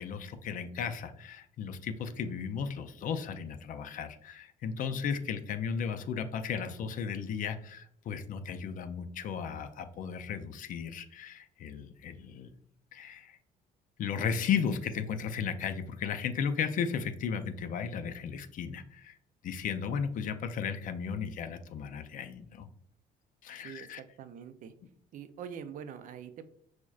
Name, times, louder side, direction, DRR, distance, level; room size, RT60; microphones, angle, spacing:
voice 1, 0.0-12.5 12.9-13.4 14.0-19.2 19.4-22.7 23.4-24.0, left 7 dB, 50° left, 9 dB, 0.4 m, -35 dB
voice 2, 23.6-24.7 25.1-26.5, right 8 dB, 50° right, 11 dB, 0.4 m, -44 dB
5.9 x 2.1 x 2.3 m, 0.68 s
cardioid pair, 110°, 17 cm